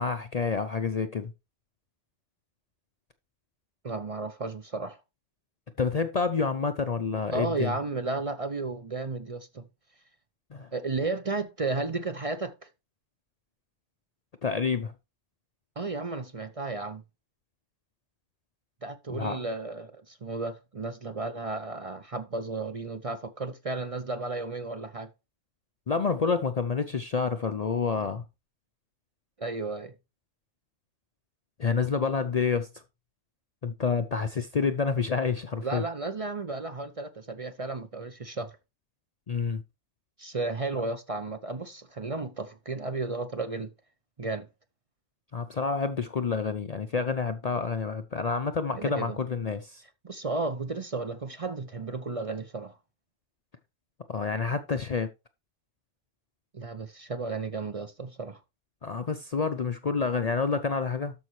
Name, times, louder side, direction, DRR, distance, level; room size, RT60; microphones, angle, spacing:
voice 1, 0.0-1.3 5.8-7.7 10.5-10.7 14.4-14.9 19.1-19.4 25.9-28.2 31.6-32.7 33.6-35.8 39.3-39.6 45.3-49.8 54.1-55.1 58.8-61.1, left 5 dB, 45° left, 0.6 m, -28 dB
voice 2, 3.8-5.0 7.3-9.7 10.7-12.7 15.8-17.0 18.8-25.1 29.4-29.9 35.6-38.6 40.2-43.7 44.2-44.5 48.8-49.2 50.0-52.8 56.5-58.4, right 3 dB, 35° right, 0.7 m, -33 dB
12.5 x 5.4 x 3.1 m
omnidirectional pair, 1.2 m